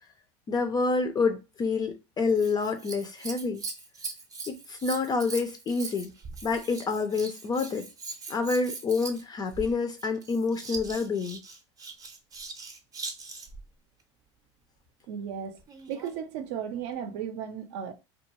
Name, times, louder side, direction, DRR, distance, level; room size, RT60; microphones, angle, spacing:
voice 1, 0.5-3.6 4.5-6.1 6.4-7.9 8.3-11.4, left 4 dB, 25° left, 0.4 m, -28 dB
Scissors, 2.3-13.7 15.6-16.2 16.9-17.0, right 4 dB, 25° right, 0.6 m, -41 dB
voice 2, 15.1-15.6 15.9-17.9, right 8 dB, 65° right, 0.5 m, -35 dB
2.3 x 2.2 x 3.0 m
hypercardioid pair, 95°, 15 cm